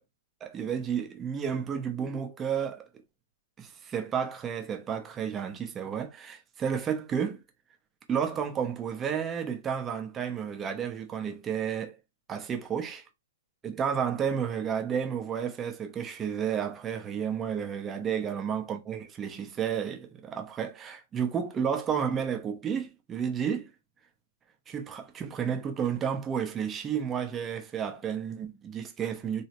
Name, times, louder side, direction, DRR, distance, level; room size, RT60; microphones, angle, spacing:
voice 1, 0.4-2.9 3.6-7.4 8.1-12.0 12.3-13.0 13.6-23.7 24.7-29.4, right 7 dB, 20° right, 0.6 m, -31 dB
3.0 x 2.0 x 2.8 m
hypercardioid pair, 140°, 0 cm